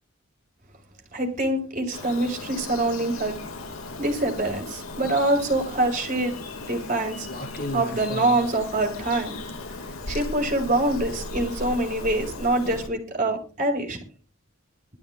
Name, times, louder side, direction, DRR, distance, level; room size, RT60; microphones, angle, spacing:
voice 1, 1.1-3.4 4.0-7.3 7.7-9.4 10.1-14.0, right 2 dB, 40° right, 2 dB, 5.7 m, -25 dB
Bird vocalization bird call bird song, 1.9-12.9, left 2 dB, 85° left, 2.2 m, -37 dB
sound 1, 5.4-5.9 7.2-9.0 10.1-10.3 11.1-11.3, left 1 dB, 45° left, 4.7 m, -35 dB
21.5 x 13.0 x 2.5 m, 0.34 s
head